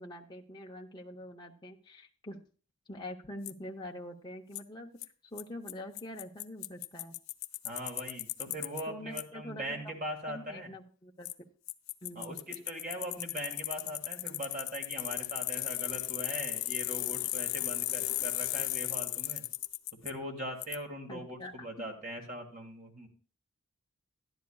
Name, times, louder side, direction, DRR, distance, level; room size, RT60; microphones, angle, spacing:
voice 1, 0.0-2.4 2.9-4.9 5.2-7.1 8.8-9.9 10.3-11.5 12.0-12.4 21.1-21.5, left 1 dB, 20° left, 0 dB, 0.7 m, -45 dB
Bicycle, 3.5-3.6 4.6-4.7 5.0-5.1 5.4-5.5 5.7-5.8 6.0-8.8 9.2-9.3 11.2-11.3 11.7-20.1 20.6-20.8, left 16 dB, 75° left, 0.4 m, -35 dB
voice 2, 7.6-10.7 12.2-19.4 20.0-23.1, right 1 dB, 40° right, 2 dB, 1.7 m, -41 dB
13.0 x 10.5 x 2.3 m, 0.38 s
head